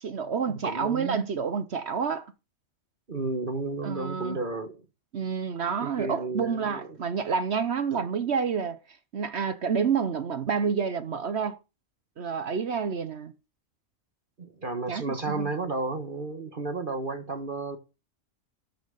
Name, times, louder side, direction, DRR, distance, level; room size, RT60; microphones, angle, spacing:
voice 1, 0.0-2.3 3.8-4.4 5.1-8.8 9.1-11.6 12.2-13.3 14.9-15.5, right 6 dB, 55° right, 1.1 m, -29 dB
voice 2, 0.6-1.3 3.1-4.8 5.6-7.0 7.9-8.0 14.4-17.8, right 3 dB, 40° right, 1.6 m, -33 dB
13.0 x 6.0 x 6.6 m
omnidirectional pair, 1.4 m